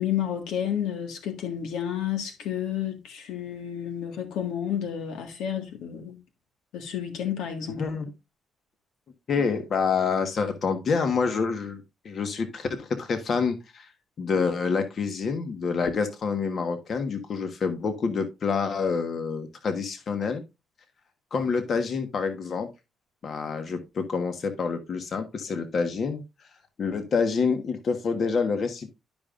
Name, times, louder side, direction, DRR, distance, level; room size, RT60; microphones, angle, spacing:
voice 1, 0.0-6.1 6.7-7.8, left 10 dB, 85° left, 1.7 m, -31 dB
voice 2, 7.8-8.1 9.3-13.9 14.2-20.4 21.3-22.7 23.2-26.2 26.8-28.9, left 5 dB, 55° left, 1.4 m, -27 dB
12.0 x 5.3 x 2.5 m
cardioid pair, 90°, 0 cm